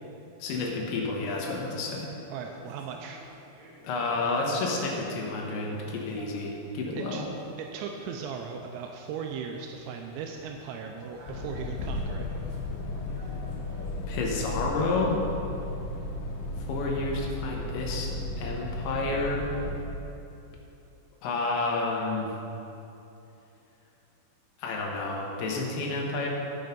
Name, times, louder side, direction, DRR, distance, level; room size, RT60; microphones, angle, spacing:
voice 1, 0.4-2.1 3.8-7.2 14.1-15.2 16.6-18.1 18.4-19.5 21.2-22.3 24.6-26.3, left 3 dB, 75° left, -1 dB, 3.3 m, -30 dB
sound 1, 1.6-14.7, equal, 60° right, 2.8 m, -49 dB
voice 2, 2.3-3.2 6.9-7.2 7.6-12.3, right 6 dB, 85° right, 3 dB, 2.6 m, -38 dB
sound 2, 11.3-19.9, left 2 dB, 90° left, 3.6 m, -34 dB
12.5 x 6.4 x 5.3 m, 2.9 s
omnidirectional pair, 5.8 m